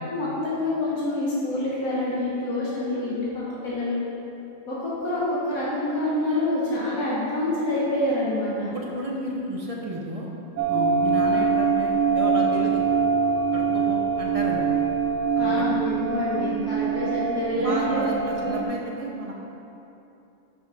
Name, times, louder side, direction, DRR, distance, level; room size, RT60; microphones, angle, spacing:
voice 1, 0.1-4.0 4.7-8.8 15.4-18.6, left 1 dB, 80° left, -7 dB, 1.7 m, -27 dB
voice 2, 8.6-10.3 10.7-12.8 13.5-14.6 15.3-15.7 17.6-19.3, right 1 dB, 35° right, -2 dB, 0.6 m, -32 dB
sound 1, 10.6-18.6, right 5 dB, 70° right, 0.8 m, -24 dB
5.9 x 5.3 x 5.1 m, 2.9 s
omnidirectional pair, 1.5 m